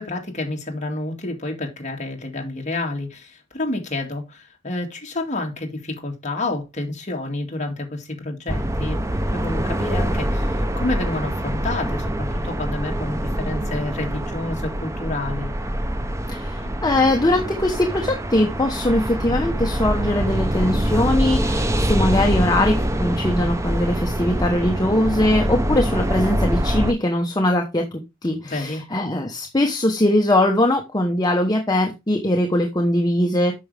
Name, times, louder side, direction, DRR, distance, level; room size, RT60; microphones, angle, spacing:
voice 1, 0.0-15.5 16.7-16.8 28.4-28.8, left 2 dB, 35° left, 2.2 m, -29 dB
sound 1, 8.5-26.9, equal, 15° right, 0.7 m, -24 dB
voice 2, 16.3-33.5, left 1 dB, 20° left, 1.0 m, -21 dB
8.6 x 6.1 x 3.3 m
head